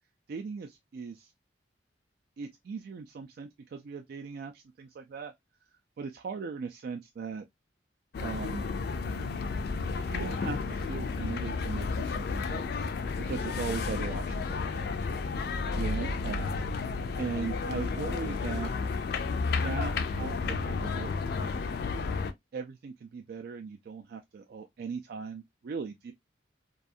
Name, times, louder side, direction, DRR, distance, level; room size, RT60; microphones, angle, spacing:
voice 1, 0.3-1.3 2.4-5.3 6.0-7.4 8.2-8.6 10.0-12.7 13.2-14.9 15.7-16.6 17.2-18.7 19.4-21.6 22.5-26.1, right 5 dB, 60° right, 0.3 m, -39 dB
sound 1, 8.1-22.3, left 4 dB, 60° left, 0.4 m, -32 dB
2.4 x 2.3 x 2.5 m
head